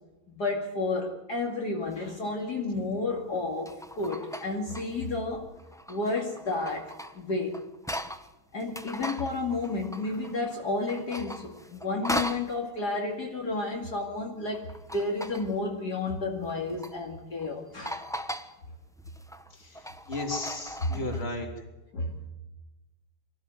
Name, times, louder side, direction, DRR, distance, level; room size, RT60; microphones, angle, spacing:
voice 1, 0.3-5.5 5.9-7.6 8.5-14.7 14.9-18.2 20.9-21.1 21.9-22.1, left 3 dB, 50° left, -1 dB, 2.9 m, -31 dB
sound 1, 1.9-2.1 3.3-5.1 5.6-8.3 8.6-10.5 10.8-12.5 14.5-15.6 16.4-17.0 17.4-17.5 17.9-18.5 19.0-21.2, equal, 5° left, 0.5 m, -38 dB
voice 2, 19.6-21.5, left 2 dB, 30° left, 2 dB, 3.6 m, -35 dB
25.0 x 15.5 x 7.9 m, 1.1 s
omnidirectional pair, 2.2 m